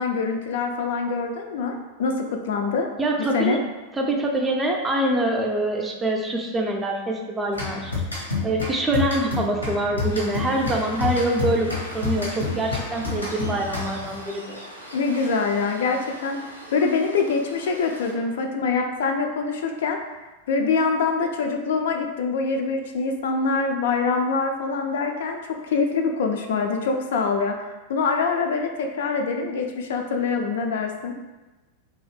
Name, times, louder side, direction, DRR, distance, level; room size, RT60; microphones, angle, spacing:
voice 1, 0.0-2.9 3.2-3.6 14.9-16.4 16.7-20.0 20.5-27.6 27.9-31.1, left 4 dB, 60° left, 3 dB, 0.3 m, -24 dB
voice 2, 3.0-3.6 3.9-7.9 8.4-14.6, right 1 dB, 15° right, 1 dB, 0.4 m, -25 dB
sound 1, 7.5-14.2, left 4 dB, 85° left, 0.8 m, -29 dB
Waves surf, 10.0-18.1, equal, 90° right, 0.5 m, -41 dB
2.6 x 2.3 x 3.2 m, 1.2 s
figure-of-eight pair, 90°, 0 cm